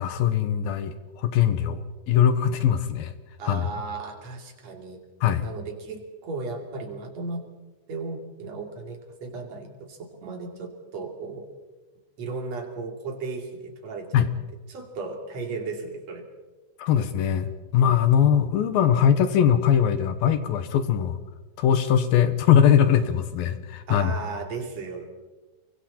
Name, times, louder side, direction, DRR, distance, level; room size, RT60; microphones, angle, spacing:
voice 1, 0.0-1.8 2.1-3.1 3.4-3.7 5.2-5.5 14.1-14.3 16.8-21.2 21.6-24.1, left 9 dB, 70° left, 10 dB, 2.5 m, -21 dB
voice 2, 3.4-5.0 5.4-7.4 7.9-11.4 12.2-14.3 14.7-16.2 23.9-25.1, right 4 dB, 45° right, 2 dB, 3.4 m, -35 dB
28.5 x 23.5 x 4.3 m, 1.2 s
omnidirectional pair, 5.1 m